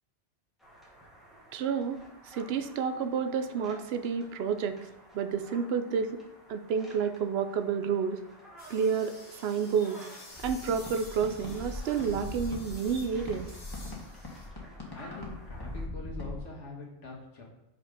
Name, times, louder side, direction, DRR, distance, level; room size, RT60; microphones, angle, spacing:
sound 1, 0.6-15.9, right 1 dB, ahead, 1.8 m, -54 dB
voice 1, 1.5-4.8 5.1-6.2 6.5-8.2 8.7-10.0 10.4-13.5, right 6 dB, 65° right, 9 dB, 0.8 m, -30 dB
sound 2, 8.6-14.5, left 2 dB, 55° left, 1.7 m, -51 dB
sound 3, 10.3-16.4, left 2 dB, 20° left, 1.4 m, -41 dB
voice 2, 14.9-17.4, left 2 dB, 85° left, -2 dB, 1.9 m, -44 dB
5.4 x 5.2 x 5.2 m, 0.86 s
omnidirectional pair, 1.2 m